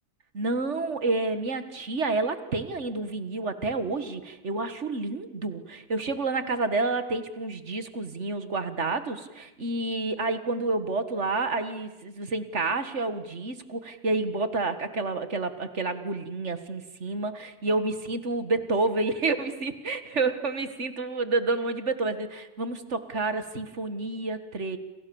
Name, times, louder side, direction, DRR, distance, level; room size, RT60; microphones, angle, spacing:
voice 1, 0.3-24.8, right 3 dB, 45° right, 10 dB, 1.9 m, -29 dB
29.5 x 27.0 x 7.1 m, 0.97 s
omnidirectional pair, 1.7 m